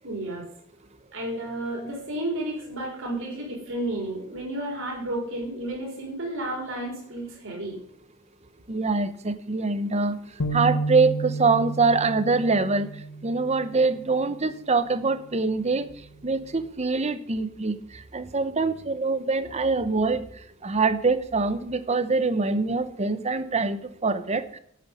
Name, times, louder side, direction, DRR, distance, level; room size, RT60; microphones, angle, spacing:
voice 1, 0.0-0.4 1.1-7.8, right 1 dB, 60° right, -2 dB, 4.3 m, -32 dB
voice 2, 8.7-10.2 10.5-12.9 13.2-15.9 16.2-17.8 18.1-20.3 20.6-24.6, right 3 dB, 30° right, 12 dB, 0.9 m, -24 dB
sound 1, 10.4-13.9, right 3 dB, 80° left, 1.2 m, -31 dB
11.0 x 8.6 x 5.3 m, 0.66 s
head